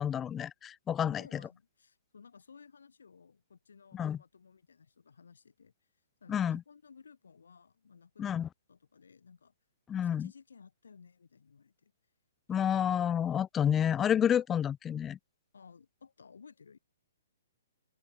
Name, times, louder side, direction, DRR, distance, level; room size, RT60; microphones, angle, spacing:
voice 1, 0.0-1.2 3.9-4.2 6.3-6.6 8.2-8.5 9.9-10.3 12.5-15.2, left 9 dB, 15° left, 0.4 m, -29 dB
voice 2, 1.0-5.7 6.2-8.4 8.7-9.5 10.0-11.9 12.7-12.8 14.3-14.5 15.5-16.8, left 5 dB, 75° left, 5.9 m, -56 dB
open air
hypercardioid pair, 130°, 0 cm